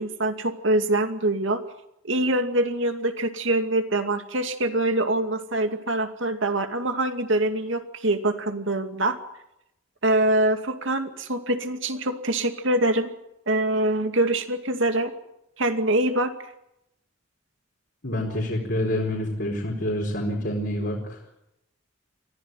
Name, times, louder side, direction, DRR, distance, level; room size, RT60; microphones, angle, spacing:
voice 1, 0.0-1.6 2.0-9.2 10.0-13.1 13.5-15.1 15.6-16.3, right 1 dB, 65° right, 7 dB, 2.4 m, -24 dB
voice 2, 18.0-21.2, left 1 dB, 55° left, -2 dB, 4.6 m, -27 dB
24.0 x 15.5 x 9.2 m, 0.82 s
head